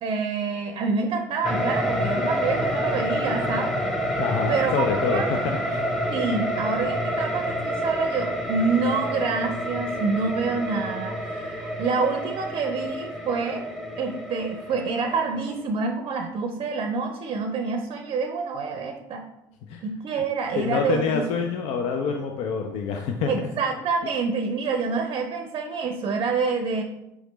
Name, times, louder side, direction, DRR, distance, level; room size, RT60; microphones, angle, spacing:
voice 1, 0.0-3.8 4.5-5.2 6.1-13.7 14.0-19.2 19.8-21.2 23.3-26.8, right 4 dB, 45° right, 5 dB, 0.5 m, -27 dB
sound 1, 1.4-15.6, equal, ahead, 0.8 m, -28 dB
voice 2, 4.2-5.8 19.7-19.8 20.5-23.5, left 5 dB, 65° left, 4 dB, 0.5 m, -27 dB
4.9 x 3.1 x 3.0 m, 0.90 s
hypercardioid pair, 75°, 11 cm